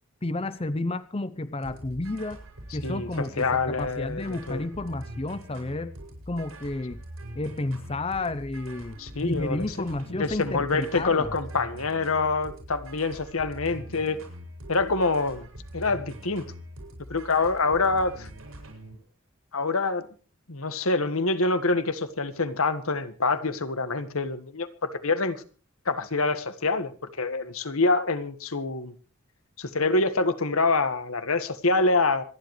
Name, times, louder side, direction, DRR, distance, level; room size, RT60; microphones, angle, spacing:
voice 1, 0.2-2.4 2.7-6.0 6.3-7.0 7.4-11.4, left 2 dB, 25° left, 14 dB, 0.7 m, -31 dB
sound 1, 1.6-18.9, right 1 dB, 85° right, 6.9 m, -43 dB
voice 2, 2.8-4.6 9.0-9.7 10.1-14.2 14.7-15.5 15.7-16.5 17.1-18.3 19.5-20.1 20.5-25.4 25.8-26.9 27.2-28.9 29.6-32.2, left 3 dB, 85° left, 11 dB, 1.6 m, -26 dB
26.5 x 11.0 x 3.3 m, 0.38 s
head